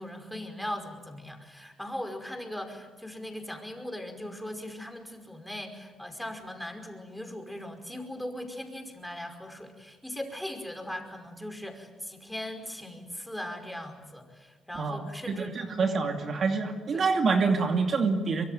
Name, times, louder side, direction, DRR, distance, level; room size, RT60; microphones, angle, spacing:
voice 1, 0.0-16.0 16.9-17.1, left 1 dB, ahead, 5 dB, 5.2 m, -39 dB
voice 2, 15.3-18.4, right 4 dB, 50° right, 4 dB, 2.5 m, -26 dB
24.5 x 24.0 x 9.3 m, 1.3 s
cardioid pair, 90°, 0 cm